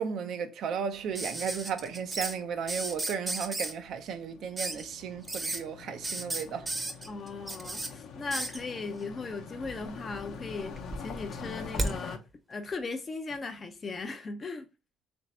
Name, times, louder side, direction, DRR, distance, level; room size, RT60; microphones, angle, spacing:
voice 1, 0.0-6.7, right 7 dB, 60° right, 0.6 m, -34 dB
sound 1, 1.1-12.2, left 6 dB, 70° left, 0.7 m, -45 dB
sound 2, 1.1-2.3 2.7-3.7 4.6-4.8 5.2-5.6 6.0-7.9 8.3-8.6 9.6-10.2 10.5-11.9 13.3-13.4, right 2 dB, 20° right, 0.8 m, -34 dB
voice 2, 7.1-12.2 12.5-14.7, left 3 dB, 35° left, 0.5 m, -38 dB
3.2 x 2.6 x 4.1 m
supercardioid pair, 75°, 0 cm